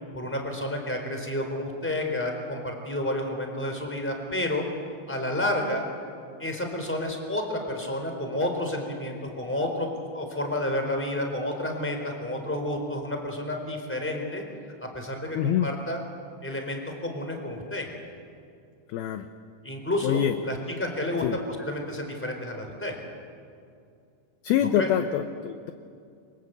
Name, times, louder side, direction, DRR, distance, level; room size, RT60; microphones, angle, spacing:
voice 1, 0.1-4.6 5.1-5.8 6.4-14.4 14.8-16.0 16.4-17.8 19.6-22.9 24.7-24.9, left 1 dB, 5° left, 3 dB, 3.8 m, -30 dB
voice 2, 15.3-15.7 18.9-19.3 20.0-20.3 21.2-21.4 24.4-25.7, left 10 dB, 75° left, 8 dB, 2.3 m, -25 dB
29.5 x 24.5 x 8.2 m, 2.4 s
omnidirectional pair, 5.2 m